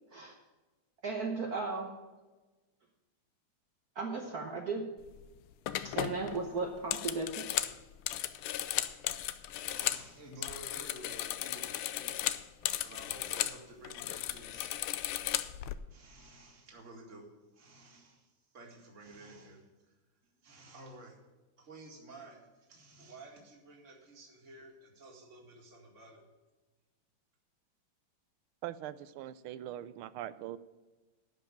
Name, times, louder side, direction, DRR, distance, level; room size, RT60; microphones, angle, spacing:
voice 1, 0.1-0.4 1.0-2.0 3.9-4.9 5.8-7.5, right 3 dB, 55° right, 2 dB, 1.3 m, -36 dB
sound 1, 5.0-5.2 5.7-10.1 10.3-13.6 13.8-15.7, left 13 dB, 80° left, 1.5 m, -35 dB
voice 2, 9.6-14.7 15.9-17.3 17.5-18.3 18.5-19.6 20.4-21.2 21.6-22.4 22.7-26.2, right 2 dB, 35° right, 0 dB, 2.3 m, -52 dB
voice 3, 28.6-30.6, right 12 dB, 80° right, 15 dB, 1.4 m, -42 dB
12.0 x 5.3 x 8.7 m, 1.2 s
omnidirectional pair, 2.3 m